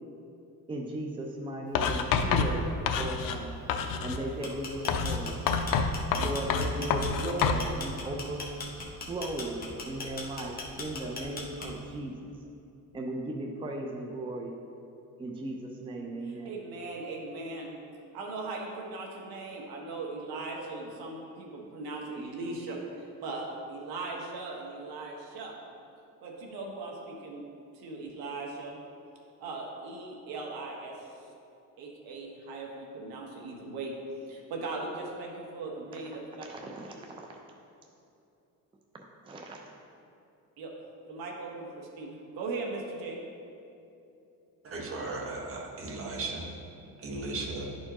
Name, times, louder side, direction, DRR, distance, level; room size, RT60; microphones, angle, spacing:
voice 1, 0.7-2.6 2.9-3.6 4.0-5.3 6.2-8.5 9.1-12.1 12.9-14.5 15.2-16.5 36.4-37.3 38.9-39.6, right 1 dB, 15° right, 1 dB, 0.5 m, -36 dB
Writing, 1.7-3.4 3.7-4.2 4.9-7.7, left 6 dB, 65° left, 0.6 m, -28 dB
sound 1, 4.3-11.9, left 3 dB, 25° left, 1.1 m, -39 dB
voice 2, 16.2-17.8 18.1-25.6 26.2-27.5 27.7-28.8 29.4-31.0 31.8-36.5 40.6-40.7 41.1-43.2, right 3 dB, 75° right, 0 dB, 1.3 m, -39 dB
voice 3, 44.6-46.5 47.0-47.7, right 3 dB, 40° right, -1 dB, 1.2 m, -36 dB
11.5 x 4.4 x 3.0 m, 2.7 s
cardioid pair, 120°, 36 cm